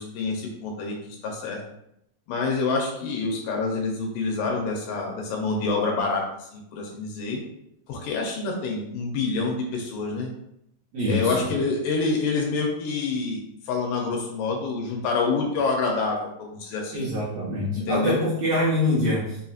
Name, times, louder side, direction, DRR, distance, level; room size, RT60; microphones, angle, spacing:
voice 1, 0.0-1.6 2.3-7.4 7.9-10.3 11.1-17.1 17.7-18.2, left 4 dB, 80° left, 0 dB, 2.1 m, -27 dB
voice 2, 10.9-11.5 16.9-19.5, left 1 dB, 75° right, -8 dB, 1.6 m, -25 dB
5.3 x 2.7 x 2.4 m, 0.78 s
omnidirectional pair, 4.0 m